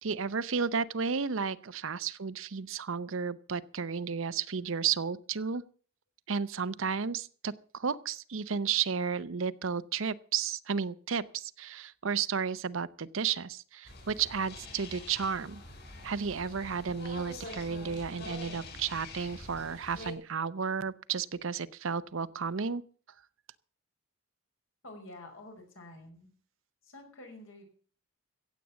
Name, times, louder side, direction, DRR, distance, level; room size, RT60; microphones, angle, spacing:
voice 1, 0.0-5.6 6.3-15.6 16.0-22.8, right 6 dB, 70° right, 16 dB, 0.7 m, -33 dB
sound 1, 13.9-20.1, left 2 dB, 50° left, 5.4 m, -45 dB
voice 2, 24.8-26.3 26.8-27.6, left 2 dB, 70° left, 4 dB, 5.4 m, -49 dB
16.0 x 8.4 x 7.0 m, 0.43 s
head